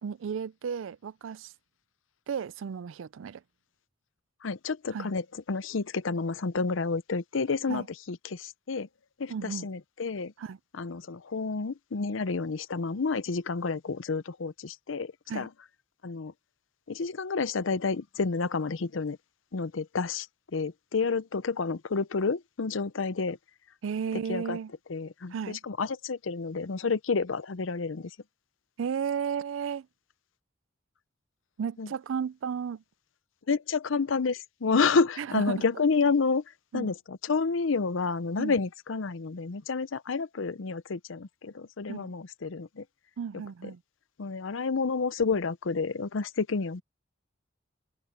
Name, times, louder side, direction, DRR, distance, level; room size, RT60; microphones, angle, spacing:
voice 1, 0.0-1.5 2.3-3.4 4.9-5.1 7.7-7.9 9.3-9.7 10.4-10.6 15.3-15.5 23.8-24.7 25.3-25.6 28.8-29.9 31.6-32.8 35.2-35.7 36.7-36.9 38.4-38.6 41.9-42.1 43.2-43.8, right 7 dB, 85° right, 0.4 m, -34 dB
voice 2, 4.4-5.2 5.5-8.9 9.2-10.3 10.8-15.5 16.0-16.3 16.9-19.2 19.5-20.3 20.5-23.4 24.3-24.6 24.9-25.3 25.6-28.1 31.8-31.9 33.5-36.4 36.7-42.8 44.2-46.8, left 4 dB, 85° left, 0.7 m, -29 dB
open air
head